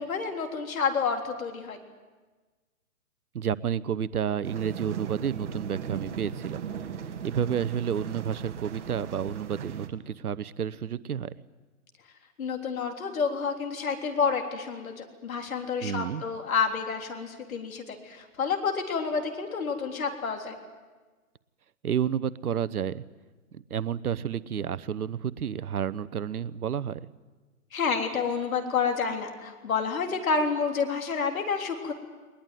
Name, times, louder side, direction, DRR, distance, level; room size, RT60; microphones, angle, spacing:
voice 1, 0.0-1.8 12.4-20.6 27.7-31.9, left 5 dB, 65° left, 4 dB, 3.6 m, -29 dB
voice 2, 3.3-6.7 7.2-11.3 15.8-16.2 21.8-23.0 23.5-27.0, right 8 dB, 75° right, 17 dB, 0.9 m, -30 dB
sound 1, 4.4-9.9, right 8 dB, 50° right, 1.8 m, -38 dB
20.5 x 20.5 x 9.2 m, 1.3 s
hypercardioid pair, 140°, 45 cm